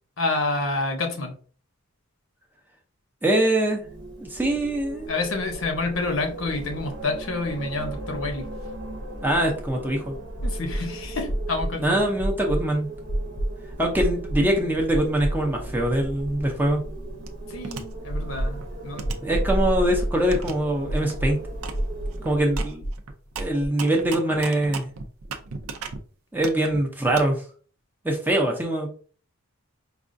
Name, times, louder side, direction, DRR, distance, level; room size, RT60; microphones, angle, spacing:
voice 1, 0.2-1.3 5.1-8.5 10.4-12.0 17.5-19.2, left 3 dB, 65° left, 4 dB, 0.8 m, -28 dB
voice 2, 3.2-3.8 4.2-5.1 9.2-10.2 11.8-12.9 13.8-16.8 19.2-21.4 22.2-22.9 23.4-24.9 26.3-27.4 28.0-28.9, right 1 dB, 10° right, 0 dB, 0.6 m, -23 dB
Wind, 3.8-22.8, right 1 dB, 55° right, 0.9 m, -35 dB
sound 1, 6.6-6.7 6.9-7.0 8.6-9.8 10.4-10.9 11.3-11.8 12.2-12.7 13.1-13.5 14.0-14.5 14.9-15.7 16.0-16.1 18.1-18.7 19.0-19.5 20.0-20.4 20.9-21.3 21.7-22.2 22.5-23.0 23.3-23.7, right 1 dB, 35° left, 0.4 m, -28 dB
sound 2, 17.2-17.8 18.3-19.9 20.3-20.5 20.9-21.1 21.6-21.8 22.1-26.0 26.4-27.2, right 5 dB, 80° right, 0.5 m, -36 dB
4.8 x 2.3 x 2.5 m, 0.42 s
head